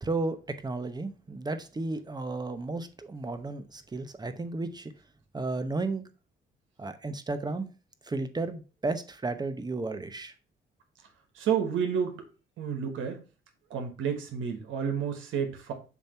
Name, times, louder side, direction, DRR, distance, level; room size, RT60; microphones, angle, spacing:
voice 1, 0.0-4.9 5.3-6.1 6.8-7.7 8.1-10.3, right 3 dB, 20° right, 0.8 m, -33 dB
voice 2, 11.3-12.2 12.6-13.2 13.7-15.7, right 7 dB, 85° right, 1.5 m, -30 dB
7.0 x 2.9 x 5.5 m
cardioid pair, 90°, 20 cm